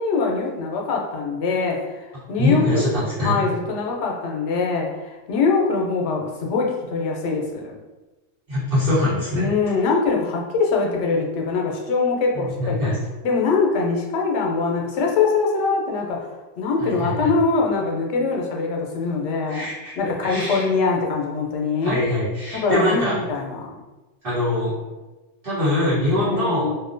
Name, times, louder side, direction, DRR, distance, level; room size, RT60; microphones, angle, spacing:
voice 1, 0.0-2.8 3.2-7.8 9.3-12.8 13.2-16.3 16.6-19.7 20.0-22.0 22.5-23.7 26.1-26.7, left 4 dB, 80° left, 0 dB, 0.9 m, -23 dB
voice 2, 2.4-3.4 8.5-9.5 12.3-13.0 16.8-17.3 19.5-19.9 20.2-20.6 21.8-23.2 24.2-24.7 25.4-26.7, left 1 dB, 55° right, -11 dB, 1.1 m, -23 dB
2.6 x 2.1 x 2.5 m, 1.2 s
omnidirectional pair, 1.2 m